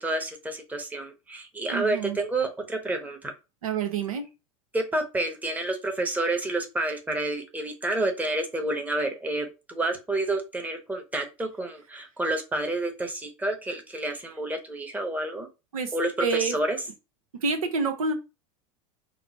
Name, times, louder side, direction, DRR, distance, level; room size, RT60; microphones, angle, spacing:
voice 1, 0.0-3.3 4.7-15.5 15.9-16.8, right 2 dB, 10° right, 4 dB, 0.8 m, -29 dB
voice 2, 1.7-2.2 3.6-4.2 15.7-15.9 16.2-16.5 17.4-18.1, right 5 dB, 85° right, 6 dB, 0.8 m, -27 dB
3.0 x 2.0 x 4.0 m, 0.28 s
hypercardioid pair, 100°, 18 cm